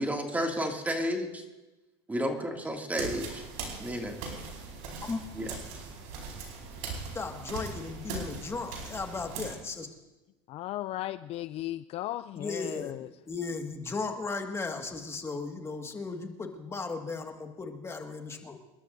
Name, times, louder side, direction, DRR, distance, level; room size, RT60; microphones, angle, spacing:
voice 1, 0.0-1.4 2.1-3.4 3.8-4.2 5.3-5.6, equal, 10° right, 2 dB, 2.4 m, -31 dB
sound 1, 2.9-9.5, right 4 dB, 65° right, 4.8 m, -40 dB
voice 2, 7.1-9.9 12.4-18.6, left 4 dB, 20° left, 4 dB, 1.9 m, -36 dB
voice 3, 10.5-13.1, left 14 dB, 45° left, 14 dB, 0.4 m, -36 dB
28.0 x 12.5 x 2.7 m, 1.1 s
supercardioid pair, 105°, 15 cm